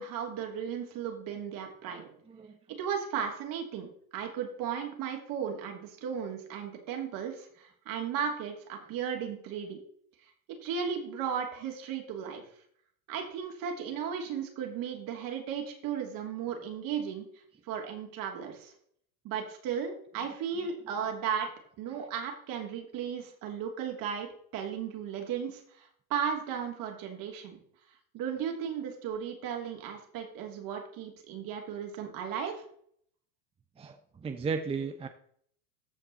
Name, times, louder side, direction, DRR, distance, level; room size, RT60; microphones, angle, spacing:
voice 1, 0.0-2.1 2.8-9.8 10.6-12.4 13.1-17.2 17.7-18.7 19.2-21.5 21.8-27.6 28.1-32.6, right 7 dB, 50° right, 2 dB, 2.9 m, -35 dB
voice 2, 1.9-2.6 33.8-35.1, right 5 dB, 15° right, 7 dB, 0.6 m, -36 dB
14.5 x 5.4 x 4.1 m, 0.63 s
supercardioid pair, 110°, 43 cm